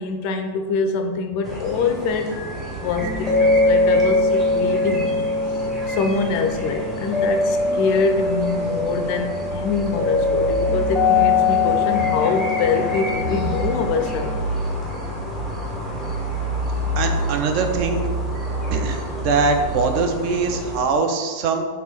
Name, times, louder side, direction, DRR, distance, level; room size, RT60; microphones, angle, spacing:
voice 1, 0.0-2.4 2.8-5.2 5.5-5.6 5.9-14.3, left 5 dB, 45° left, 6 dB, 0.4 m, -24 dB
sound 1, 1.4-20.8, right 1 dB, 20° right, 0.9 m, -29 dB
sound 2, 2.3-14.4, left 3 dB, 10° left, 0.7 m, -22 dB
voice 2, 17.0-18.1 18.7-21.7, right 4 dB, 45° right, 5 dB, 0.4 m, -22 dB
4.1 x 2.6 x 3.4 m, 1.5 s
figure-of-eight pair, 90°, 0 cm